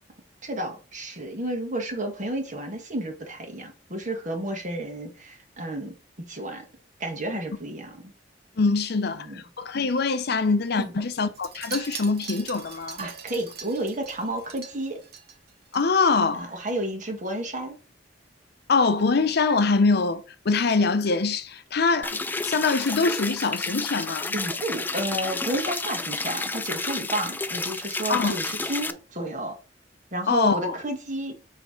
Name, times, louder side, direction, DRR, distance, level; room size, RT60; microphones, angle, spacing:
voice 1, 0.4-5.9 6.3-6.7 7.0-8.1 9.2-9.4 10.8-10.9 13.0-15.0 16.3-17.8 24.3-29.5 30.1-31.4, right 1 dB, 45° right, 1.5 m, -31 dB
voice 2, 8.6-13.0 15.7-16.5 18.7-24.3 28.1-28.4 30.3-30.7, left 4 dB, 60° left, 0.6 m, -24 dB
Wind chime, 11.3-15.8 16.1-16.4 16.7-16.8, right 7 dB, 60° right, 1.0 m, -41 dB
sound 1, 22.0-28.9, left 3 dB, 10° left, 0.3 m, -31 dB
7.0 x 3.3 x 4.4 m
head